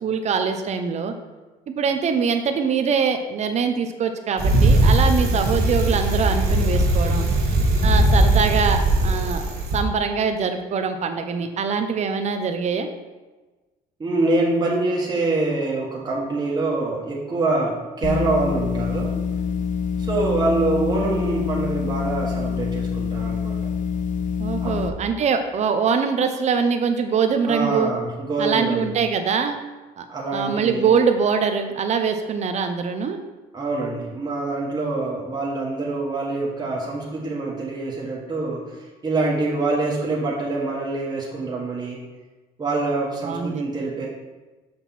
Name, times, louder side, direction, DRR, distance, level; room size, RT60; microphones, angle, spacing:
voice 1, 0.0-1.1 1.7-7.3 7.8-9.4 9.7-12.9 24.4-27.9 28.4-29.6 30.0-30.1 30.3-33.2 43.2-43.7, right 6 dB, 40° right, 7 dB, 0.7 m, -23 dB
Bicycle, 4.4-9.8, right 1 dB, 70° right, 1.6 m, -19 dB
voice 2, 14.0-19.2 20.0-23.7 24.6-24.8 27.5-28.9 30.1-31.0 33.5-42.0 42.6-44.1, right 2 dB, 25° right, -4 dB, 1.5 m, -25 dB
sound 1, 18.0-24.9, left 6 dB, 50° left, 0.8 m, -26 dB
6.5 x 6.1 x 4.3 m, 1.2 s
cardioid pair, 110°, 17 cm